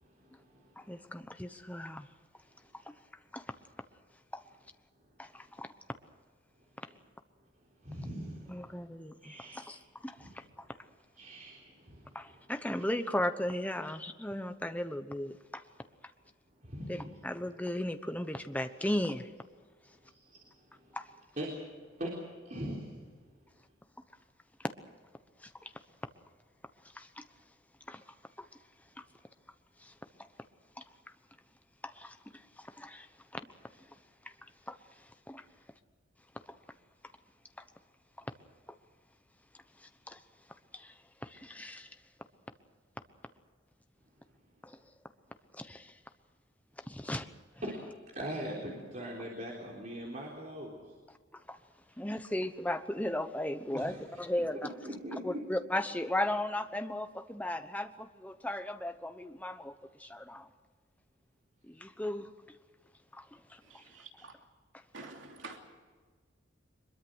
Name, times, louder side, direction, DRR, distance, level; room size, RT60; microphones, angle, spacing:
voice 1, 0.0-1.0 7.8-8.9 9.2-9.7 10.2-10.3 11.2-12.3 16.6-17.1 19.9-21.0 21.4-22.1 22.4-23.2 47.6-47.7 48.1-51.0 51.9-52.0 53.7-54.0 54.8-55.4, equal, 40° right, 3.8 m, -42 dB
voice 2, 0.8-2.1 2.9-3.0 3.3-3.5 4.3-4.4 5.2-5.7 8.5-10.7 12.1-15.6 16.9-19.3 20.9-21.1 25.4-25.7 26.9-27.3 27.9-28.0 28.4-28.5 29.0-29.1 29.8-29.9 31.8-33.5 34.2-34.3 34.7-35.4 39.8-40.2 40.7-40.9 41.2-42.0 44.6-44.8 45.5-45.9 46.9-47.3 51.5-51.6 52.0-54.7 55.2-59.7 60.0-60.5 61.7-62.3 63.1-63.2 63.5-63.8, left 1 dB, 10° left, 1.0 m, -37 dB
voice 3, 63.7-64.3 64.9-65.6, right 3 dB, 75° right, 2.8 m, -48 dB
23.5 x 22.0 x 6.4 m
head